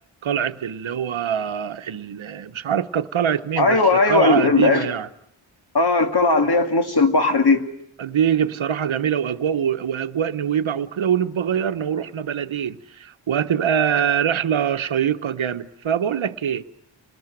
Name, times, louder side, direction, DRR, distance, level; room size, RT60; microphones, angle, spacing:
voice 1, 0.2-5.1 8.0-16.6, right 8 dB, 85° right, 1.0 m, -23 dB
voice 2, 3.6-4.9 5.7-7.7, left 3 dB, 55° left, 2.2 m, -17 dB
29.0 x 20.0 x 9.0 m
wide cardioid pair, 100°, 46 cm